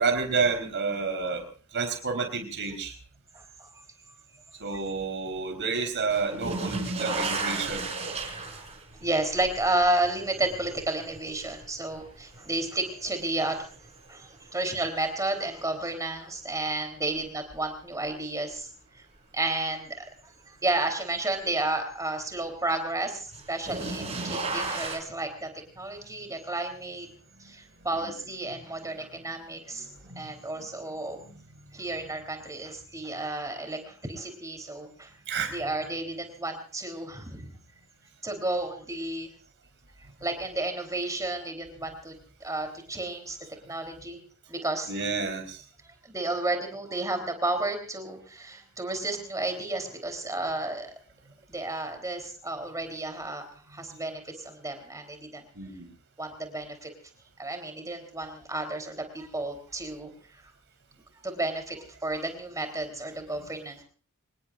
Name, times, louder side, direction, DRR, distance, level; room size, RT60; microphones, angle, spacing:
voice 1, 0.0-1.4 1.7-2.9 4.6-7.9 24.1-24.4 27.9-28.1 29.8-30.2 30.5-31.4 35.3-35.6 44.9-45.6 55.6-55.9, right 4 dB, 55° right, 4 dB, 4.4 m, -30 dB
voice 2, 3.3-3.7 4.7-4.8 9.0-13.6 14.1-18.7 19.0-19.1 19.3-20.0 20.5-25.5 25.8-27.1 27.4-29.9 30.2-31.2 31.7-35.1 35.5-37.5 38.2-39.3 40.2-42.1 42.4-43.4 43.7-44.2 44.5-44.9 45.8-50.9 51.5-55.4 56.2-56.9 57.4-60.4 61.2-63.8, right 2 dB, 15° right, 6 dB, 3.7 m, -32 dB
sound 1, 6.1-13.1 13.6-14.2 15.8-15.9 17.5-17.6 23.3-25.0, right 3 dB, 30° right, 5.7 m, -34 dB
26.0 x 20.0 x 2.6 m, 0.40 s
head